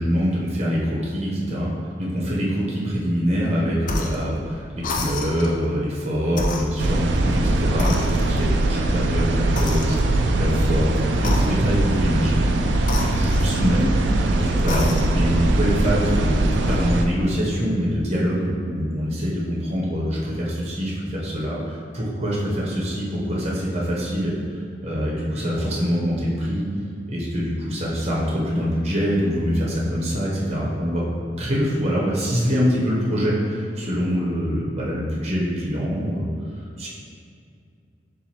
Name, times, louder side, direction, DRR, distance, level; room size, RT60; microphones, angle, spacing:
voice 1, 0.0-1.7 2.0-13.9 14.3-16.3 16.7-24.3 24.8-26.7 27.1-31.0 31.4-36.3 36.8-36.9, equal, 35° right, -5 dB, 0.7 m, -24 dB
sound 1, 3.8-4.3 4.8-5.6 6.3-7.4 7.8-8.6 9.5-10.3 11.2-11.9 12.8-13.9 14.5-15.3, left 2 dB, 50° left, 0.4 m, -29 dB
sound 2, 6.8-17.1, right 2 dB, 85° right, 0.4 m, -21 dB
7.1 x 2.5 x 2.9 m, 2.4 s
head